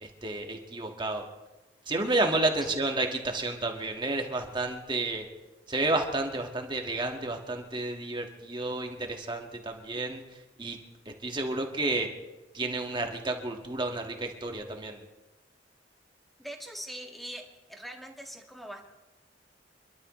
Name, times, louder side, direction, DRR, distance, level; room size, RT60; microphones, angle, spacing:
voice 1, 0.0-1.3 1.9-5.3 5.7-10.2 10.6-10.8 11.2-12.1 12.5-15.0, right 2 dB, 25° right, 3 dB, 1.8 m, -31 dB
voice 2, 16.4-17.4 17.7-18.8, right 1 dB, ahead, 2 dB, 1.8 m, -42 dB
27.0 x 12.5 x 3.2 m, 1.1 s
head